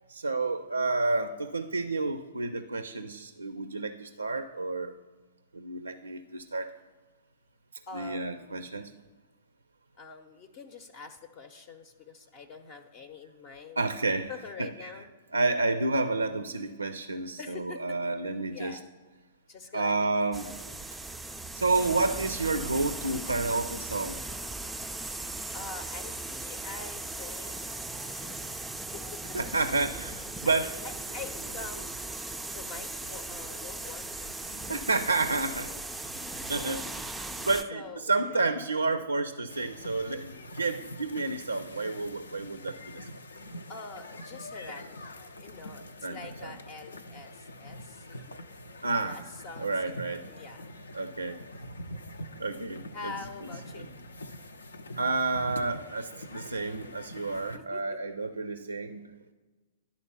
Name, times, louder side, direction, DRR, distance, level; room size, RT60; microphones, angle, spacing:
voice 1, 0.1-4.9 5.5-6.7 7.9-8.9 13.8-14.3 14.6-14.9 15.3-18.8 19.7-20.5 21.5-24.2 28.2-28.3 29.3-30.7 34.5-35.7 36.5-43.1 46.0-46.5 48.8-49.2 49.6-50.2 50.9-51.4 52.4-53.1 55.0-59.0, right 3 dB, 85° right, 10 dB, 0.4 m, -30 dB
voice 2, 7.9-8.7 10.0-13.8 14.3-15.1 17.4-18.0 18.5-18.8 19.5-20.2 25.5-27.6 28.0-29.4 30.4-31.9 32.5-34.4 34.6-34.9 35.7-35.8 36.2-36.5 37.4-38.4 43.7-48.4 48.7-50.7 52.9-53.9 57.3-58.0, left 4 dB, 40° left, 7 dB, 0.7 m, -45 dB
sound 1, 20.3-37.6, right 2 dB, 5° right, 0.4 m, -38 dB
sound 2, 39.5-57.6, left 1 dB, 75° left, 0.6 m, -44 dB
11.0 x 4.1 x 6.9 m, 1.3 s
figure-of-eight pair, 105°, 0 cm